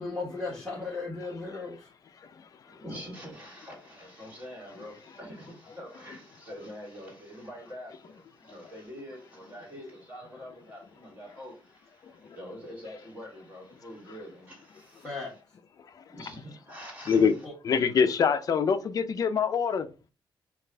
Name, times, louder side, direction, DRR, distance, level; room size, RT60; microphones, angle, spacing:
voice 1, 0.0-1.9 15.0-15.3 17.4-17.5, left 3 dB, 5° left, 1.5 m, -36 dB
voice 2, 2.7-15.4 16.1-17.4, equal, 20° right, 2.0 m, -45 dB
voice 3, 17.6-19.9, left 6 dB, 45° left, 0.5 m, -24 dB
5.4 x 2.5 x 3.3 m
wide cardioid pair, 175°, 8 cm